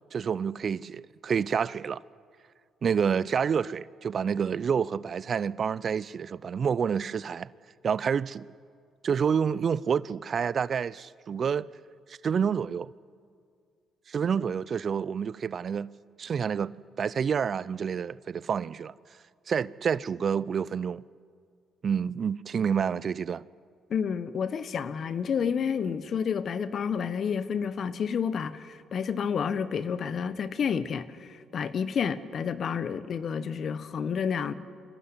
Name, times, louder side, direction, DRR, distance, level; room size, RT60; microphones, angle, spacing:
voice 1, 0.1-2.0 2.8-7.5 7.8-8.5 9.0-11.7 12.1-12.9 14.1-15.9 16.2-18.9 19.5-21.0 21.8-23.4, right 7 dB, 50° right, 0.5 m, -28 dB
voice 2, 23.9-34.5, left 7 dB, 55° left, 1.2 m, -30 dB
25.0 x 15.5 x 9.8 m
hypercardioid pair, 55°, 0 cm